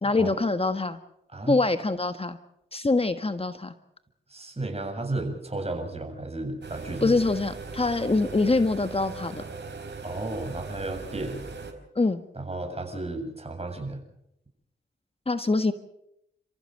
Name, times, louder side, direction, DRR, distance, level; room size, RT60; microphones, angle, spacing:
voice 1, 0.0-1.0 1.5-2.4 2.7-3.7 7.0-9.4 11.9-12.2 15.3-15.7, left 3 dB, 30° left, 10 dB, 1.5 m, -24 dB
voice 2, 4.3-7.1 10.0-11.4 12.4-14.0, right 2 dB, 30° right, 4 dB, 7.2 m, -33 dB
sound 1, 6.6-11.7, right 4 dB, 60° right, 4.8 m, -39 dB
29.5 x 15.0 x 7.9 m, 0.81 s
cardioid pair, 50°, 20 cm